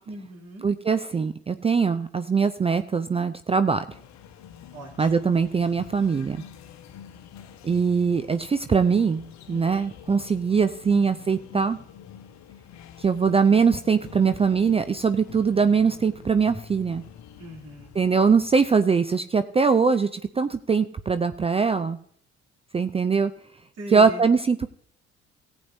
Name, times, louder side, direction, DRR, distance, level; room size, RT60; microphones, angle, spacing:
voice 1, 0.1-0.7 4.7-5.1 17.4-18.0 23.8-24.3, right 2 dB, 50° right, 0 dB, 3.1 m, -39 dB
voice 2, 0.6-3.8 5.0-6.4 7.6-11.8 13.0-17.0 17.9-22.0 22.7-23.3 23.9-24.7, right 5 dB, 20° right, 11 dB, 0.5 m, -22 dB
sound 1, 3.9-18.6, left 9 dB, 55° left, 1.1 m, -45 dB
18.5 x 8.2 x 2.7 m, 0.63 s
figure-of-eight pair, 45°, 33 cm